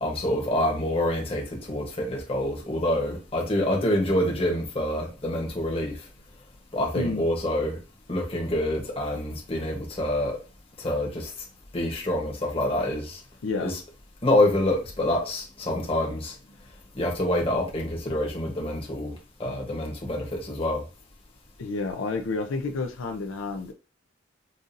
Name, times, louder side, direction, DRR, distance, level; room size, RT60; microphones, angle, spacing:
voice 1, 0.0-6.0 6.7-7.8 8.1-10.3 10.8-11.3 11.7-13.2 13.6-13.8 14.2-16.3 16.9-20.8, left 1 dB, 30° left, 1.0 m, -26 dB
voice 2, 21.6-23.7, left 3 dB, 85° left, 0.5 m, -30 dB
5.4 x 2.5 x 2.6 m
head